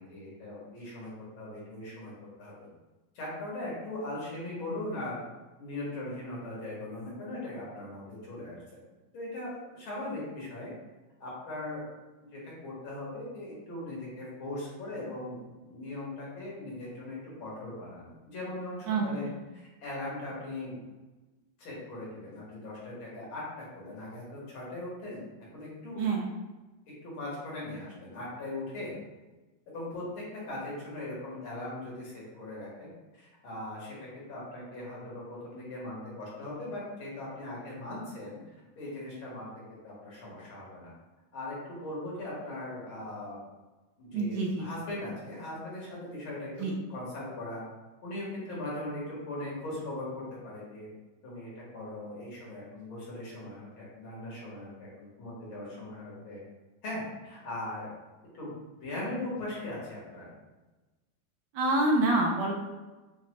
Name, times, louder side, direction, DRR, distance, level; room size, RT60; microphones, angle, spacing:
voice 1, 0.0-2.1 2.4-2.7 3.2-5.2 5.6-8.6 9.1-10.7 11.2-11.8 12.3-19.3 19.5-20.8 21.6-25.2 25.5-26.0 27.0-28.9 29.7-38.4 38.8-40.9 41.3-43.4 44.0-46.5 46.9-47.6 48.0-50.9 51.2-56.4 56.8-57.9 58.3-58.5 58.8-60.3, left 1 dB, 90° left, -6 dB, 2.2 m, -39 dB
voice 2, 44.1-44.7 46.6-46.7 61.5-62.5, right 2 dB, 75° right, 0 dB, 1.1 m, -26 dB
5.6 x 2.1 x 3.0 m, 1.2 s
omnidirectional pair, 2.2 m